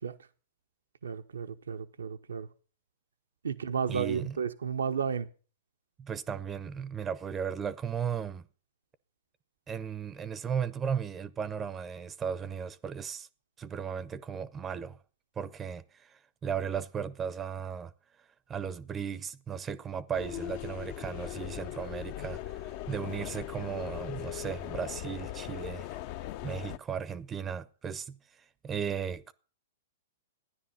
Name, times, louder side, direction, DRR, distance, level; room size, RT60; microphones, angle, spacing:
voice 1, 1.0-2.5 3.4-5.3, right 6 dB, 90° right, 0.7 m, -33 dB
voice 2, 3.9-4.4 6.0-8.4 9.7-13.3 13.6-15.0 15.4-17.9 18.5-26.0 26.4-29.3, right 7 dB, 20° right, 0.6 m, -36 dB
sound 1, 20.1-26.8, left 13 dB, 50° left, 0.5 m, -39 dB
13.0 x 9.9 x 5.6 m
hypercardioid pair, 125°, 0 cm